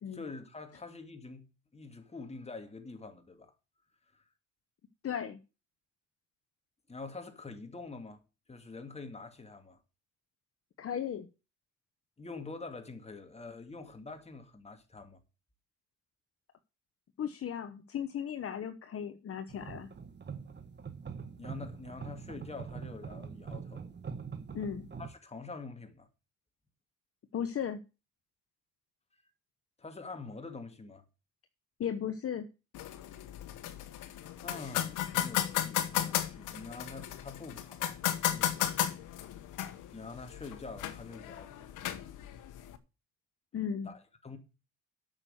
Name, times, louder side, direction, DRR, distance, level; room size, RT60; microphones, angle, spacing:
voice 1, 0.1-1.4 1.7-3.5 4.1-4.2 6.9-8.2 8.5-9.8 12.2-15.2 21.4-23.9 25.0-26.1 29.8-31.0 34.4-38.7 39.0-39.1 39.9-41.8 43.8-44.4, left 3 dB, 20° left, 2.3 m, -46 dB
voice 2, 5.0-5.4 10.8-11.3 17.2-19.9 24.5-24.9 27.3-27.8 31.8-32.5 43.5-43.9, left 8 dB, 50° left, 1.0 m, -36 dB
sound 1, 19.5-25.1, right 6 dB, 35° right, 1.4 m, -44 dB
sound 2, 32.7-42.8, left 11 dB, 85° left, 1.1 m, -35 dB
8.7 x 6.5 x 7.7 m
cardioid pair, 90°, 30 cm